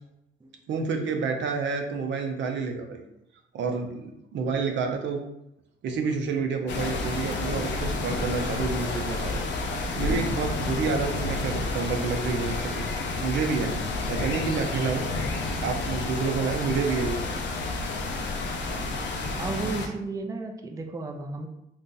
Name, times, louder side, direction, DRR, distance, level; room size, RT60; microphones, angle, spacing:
voice 1, 0.7-3.0 3.5-5.2 5.8-9.5 10.0-12.9 13.2-13.8 14.1-15.1 15.6-17.3, right 4 dB, 65° right, 3 dB, 0.6 m, -29 dB
sound 1, 6.7-19.9, left 3 dB, 65° left, 0.6 m, -30 dB
voice 2, 19.3-21.5, right 3 dB, 15° right, 3 dB, 0.4 m, -33 dB
2.6 x 2.4 x 3.8 m, 0.83 s
cardioid pair, 90°, 20 cm